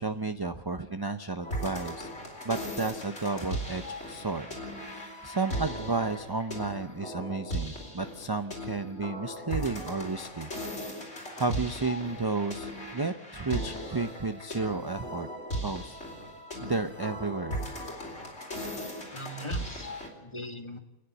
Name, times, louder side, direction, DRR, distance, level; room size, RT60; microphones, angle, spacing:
voice 1, 0.0-2.1 2.4-10.5 11.0-11.1 11.4-15.3 15.6-16.0 16.6-17.6, right 3 dB, 25° right, 8 dB, 0.6 m, -32 dB
sound 1, 1.4-20.1, equal, 80° left, 4.6 m, -38 dB
voice 2, 19.1-20.8, left 1 dB, 25° left, 6 dB, 1.8 m, -41 dB
29.0 x 10.0 x 9.0 m, 0.99 s
omnidirectional pair, 1.2 m